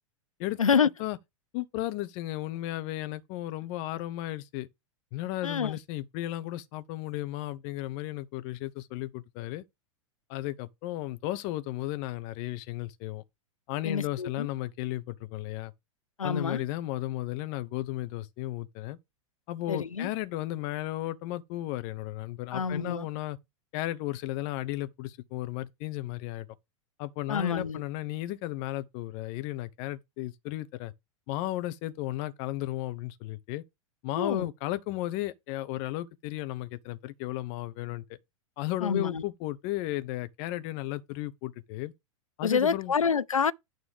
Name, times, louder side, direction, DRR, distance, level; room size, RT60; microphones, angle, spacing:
voice 1, 0.6-0.9 5.4-5.7 13.8-14.5 16.2-16.6 19.7-20.1 22.5-23.0 27.3-27.8 34.2-34.5 38.8-39.2 42.4-43.5, left 6 dB, 85° left, 0.4 m, -27 dB
voice 2, 1.5-4.7 5.1-9.6 10.3-13.2 13.7-15.7 16.2-19.0 19.5-23.4 23.7-26.5 27.0-30.9 31.3-33.6 34.0-38.0 38.6-41.9 42.4-42.9, left 16 dB, 45° left, 0.9 m, -34 dB
9.1 x 3.2 x 6.5 m
figure-of-eight pair, 95°, 17 cm